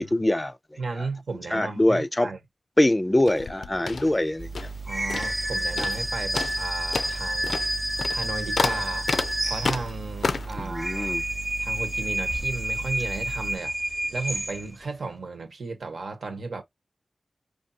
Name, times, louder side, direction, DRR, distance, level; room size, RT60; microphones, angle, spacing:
voice 1, 0.0-1.1 1.5-2.3 2.8-4.7 10.6-11.2, left 1 dB, 20° left, 0.3 m, -24 dB
voice 2, 0.8-2.4 4.8-7.7 8.1-9.1 9.4-11.2 11.6-13.7 14.1-16.6, right 3 dB, 85° right, 1.1 m, -34 dB
sound 1, 3.2-4.8 5.1-5.5 5.8-6.1 6.3-10.6, left 4 dB, 80° left, 0.4 m, -30 dB
sound 2, 4.4-13.6, right 4 dB, 50° right, 0.4 m, -38 dB
sound 3, 4.9-10.1 10.6-14.8, right 1 dB, 15° right, 0.8 m, -30 dB
5.0 x 2.7 x 2.7 m
wide cardioid pair, 90°, 0 cm